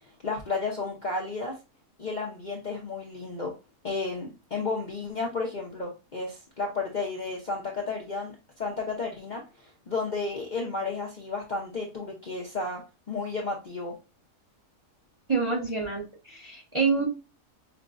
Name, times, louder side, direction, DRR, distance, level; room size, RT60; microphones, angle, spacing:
voice 1, 0.2-1.6 2.0-3.5 3.8-12.8 13.1-13.9, left 3 dB, 45° left, -2 dB, 0.6 m, -32 dB
voice 2, 15.3-17.0, right 4 dB, 30° right, -1 dB, 0.6 m, -27 dB
5.7 x 2.2 x 2.5 m, 0.28 s
omnidirectional pair, 1.7 m